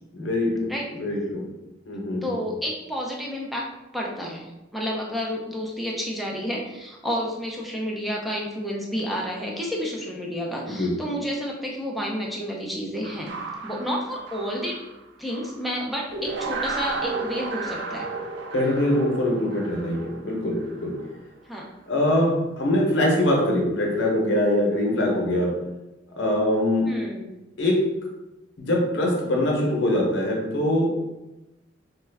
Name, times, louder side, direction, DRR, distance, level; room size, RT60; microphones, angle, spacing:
voice 1, 0.1-1.5 1.9-2.4 10.6-10.9 18.5-20.9 21.9-22.3 22.6-25.5 26.2-26.9 27.6-27.8 28.6-30.9, left 1 dB, 65° left, -1 dB, 0.8 m, -23 dB
voice 2, 2.2-3.7 3.9-13.3 13.6-14.8 15.2-18.1 21.5-21.7 26.9-27.3, equal, ahead, -2 dB, 0.5 m, -30 dB
sound 1, 13.0-15.7 16.1-21.2, right 3 dB, 60° right, 0.4 m, -33 dB
3.1 x 2.3 x 3.4 m, 0.99 s
head